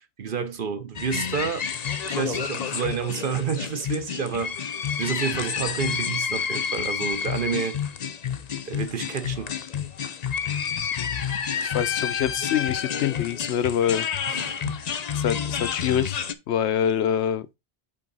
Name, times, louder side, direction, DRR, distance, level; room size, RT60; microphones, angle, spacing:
voice 1, 0.0-1.7 2.0-7.8 8.7-9.5 14.3-14.8, right 6 dB, 55° right, 0.9 m, -29 dB
sound 1, 1.0-16.3, left 7 dB, 45° left, 0.6 m, -29 dB
voice 2, 11.6-14.1 14.7-14.9 15.1-17.6, left 9 dB, 80° left, 0.9 m, -25 dB
7.7 x 3.9 x 3.9 m
omnidirectional pair, 1.1 m